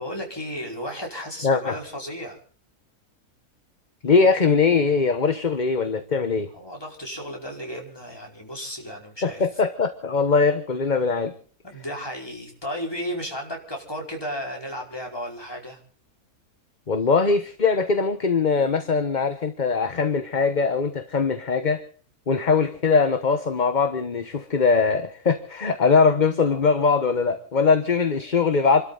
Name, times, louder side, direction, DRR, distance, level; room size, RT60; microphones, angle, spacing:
voice 1, 0.0-2.4 6.5-9.4 11.6-15.8 26.5-26.6, equal, 15° left, 0 dB, 5.0 m, -34 dB
voice 2, 1.4-1.7 4.0-6.5 9.2-11.3 16.9-21.8 22.3-28.8, left 4 dB, 35° left, 9 dB, 1.2 m, -21 dB
28.5 x 13.0 x 3.9 m, 0.44 s
omnidirectional pair, 1.6 m